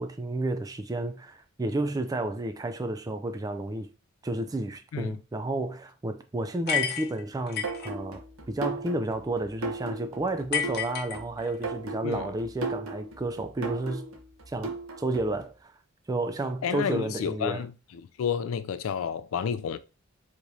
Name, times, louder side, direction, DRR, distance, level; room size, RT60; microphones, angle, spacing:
voice 1, 0.0-3.9 4.2-14.0 14.5-15.7 16.1-17.6, right 2 dB, 15° right, 0.3 m, -31 dB
sound 1, 6.7-7.9 10.5-11.7, left 8 dB, 50° left, 0.8 m, -30 dB
sound 2, 7.6-15.4, right 3 dB, 85° right, 0.9 m, -37 dB
voice 2, 16.6-17.7 18.2-19.8, left 7 dB, 70° left, 0.4 m, -30 dB
4.7 x 3.0 x 2.7 m
head